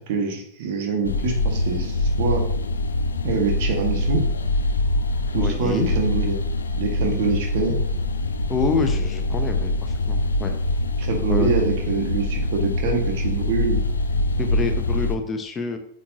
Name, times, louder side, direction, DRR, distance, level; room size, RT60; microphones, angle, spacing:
voice 1, 0.1-2.5 3.2-4.3 5.3-6.4 6.8-7.8 11.0-13.8, right 4 dB, 50° right, 2 dB, 1.7 m, -25 dB
sound 1, 1.0-15.2, left 2 dB, 75° left, 0.6 m, -24 dB
voice 2, 5.4-5.9 8.5-10.5 11.3-11.5 14.4-15.8, left 4 dB, 20° left, 6 dB, 0.9 m, -27 dB
8.4 x 6.2 x 2.9 m, 0.66 s
figure-of-eight pair, 90°, 0 cm